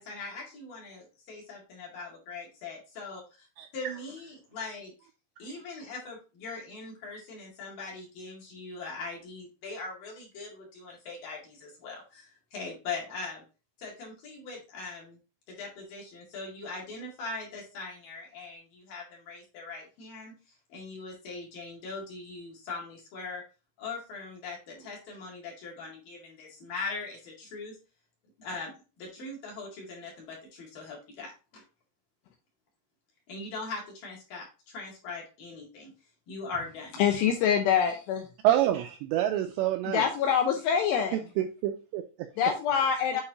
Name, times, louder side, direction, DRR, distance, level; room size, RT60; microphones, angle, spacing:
voice 1, 0.0-3.5 3.7-4.9 5.4-13.4 13.8-15.2 15.5-20.3 20.7-23.4 23.8-27.8 28.4-31.6 33.3-35.9 36.3-37.0, left 3 dB, 55° left, -3 dB, 3.3 m, -41 dB
voice 2, 37.0-38.3 39.9-41.2 42.4-43.2, left 8 dB, 80° left, 4 dB, 2.6 m, -25 dB
voice 3, 38.4-40.0 41.4-42.3 42.7-42.9, right 12 dB, 85° right, 5 dB, 2.5 m, -27 dB
8.7 x 4.7 x 2.8 m, 0.32 s
omnidirectional pair, 5.5 m